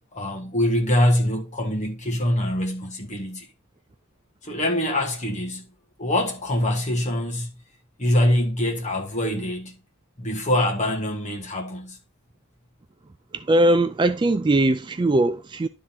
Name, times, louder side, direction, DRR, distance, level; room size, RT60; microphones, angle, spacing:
voice 1, 0.1-3.5 4.4-5.7 6.0-7.5 8.0-9.8 10.2-12.0, left 1 dB, 35° left, 2.0 m, -24 dB
voice 2, 13.3-15.7, right 1 dB, 20° right, 0.4 m, -20 dB
11.0 x 3.8 x 4.3 m
head